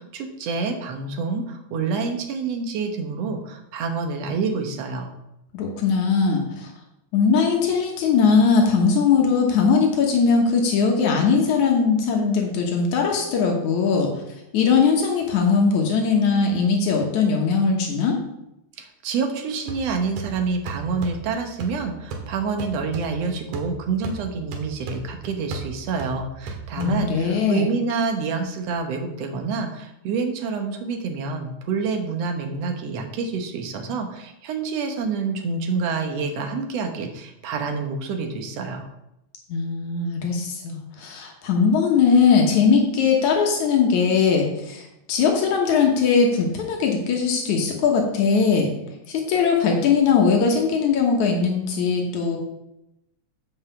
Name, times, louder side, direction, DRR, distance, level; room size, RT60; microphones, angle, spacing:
voice 1, 0.0-5.1 18.8-38.9, right 4 dB, 65° right, 4 dB, 2.2 m, -27 dB
voice 2, 5.5-6.7 7.1-14.2 14.5-18.2 26.8-27.7 39.5-48.7 49.1-52.4, left 5 dB, 80° left, 1 dB, 2.6 m, -20 dB
sound 1, 19.7-27.4, right 4 dB, 85° right, 2.8 m, -37 dB
8.0 x 5.5 x 7.0 m, 0.87 s
omnidirectional pair, 3.4 m